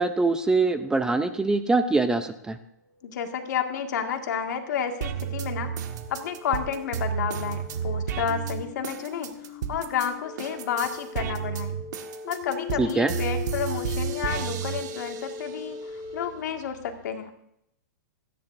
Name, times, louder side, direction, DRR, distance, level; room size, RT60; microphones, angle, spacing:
voice 1, 0.0-2.6 12.8-13.1, right 3 dB, 5° right, 10 dB, 0.6 m, -23 dB
voice 2, 3.0-5.7 6.1-11.7 12.3-15.8 16.1-17.3, left 7 dB, 70° left, 4 dB, 2.0 m, -31 dB
sound 1, 3.0-16.2, left 6 dB, 30° left, 6.7 m, -40 dB
sound 2, 5.0-10.1 10.4-15.6 16.0-17.0, right 8 dB, 70° right, 1.5 m, -32 dB
28.0 x 10.5 x 2.6 m, 0.78 s
hypercardioid pair, 145°, 10 cm